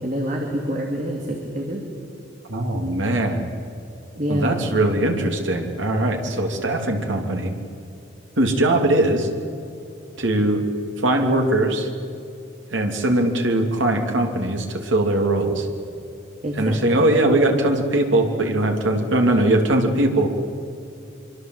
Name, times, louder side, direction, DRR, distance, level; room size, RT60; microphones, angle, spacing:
voice 1, 0.0-1.9 4.1-4.6 16.4-17.1, equal, 40° right, 0 dB, 2.8 m, -27 dB
voice 2, 2.5-3.5 4.3-7.5 8.4-9.3 10.2-10.6 11.0-11.9 12.7-15.7 16.6-20.3, right 1 dB, 80° right, 3 dB, 3.0 m, -20 dB
25.0 x 24.5 x 8.0 m, 2.7 s
head